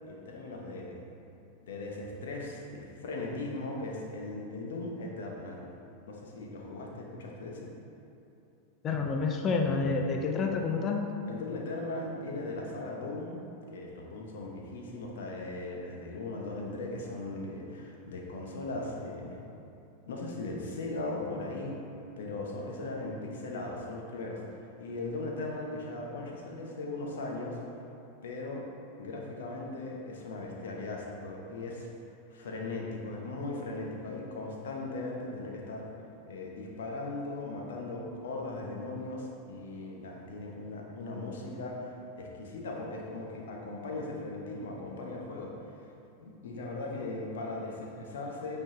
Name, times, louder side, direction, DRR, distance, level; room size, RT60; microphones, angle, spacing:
voice 1, 0.0-1.0 1.6-5.7 6.1-7.7 11.3-13.4 13.7-19.4 20.1-21.8 22.2-24.4 24.8-27.6 28.2-28.7 29.0-31.9 32.3-35.9 36.2-45.5 46.2-48.6, left 2 dB, 60° left, -1 dB, 1.0 m, -38 dB
voice 2, 8.8-11.0, left 4 dB, 30° left, 3 dB, 0.6 m, -28 dB
8.5 x 3.9 x 3.8 m, 2.9 s
figure-of-eight pair, 90°, 0 cm